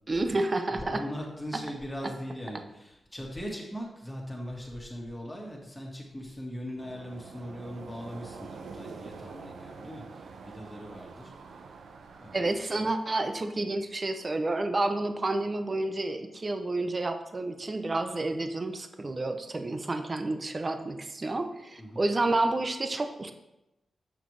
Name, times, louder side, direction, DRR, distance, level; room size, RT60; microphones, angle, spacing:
voice 1, 0.1-1.0 12.3-23.3, right 2 dB, 35° right, 7 dB, 0.7 m, -30 dB
voice 2, 0.7-11.3 12.2-12.9 21.8-22.0, equal, 10° left, -2 dB, 2.0 m, -40 dB
sound 1, 6.8-12.5, right 4 dB, 85° right, 0.6 m, -46 dB
7.0 x 5.8 x 3.2 m, 0.93 s
cardioid pair, 70°, 0 cm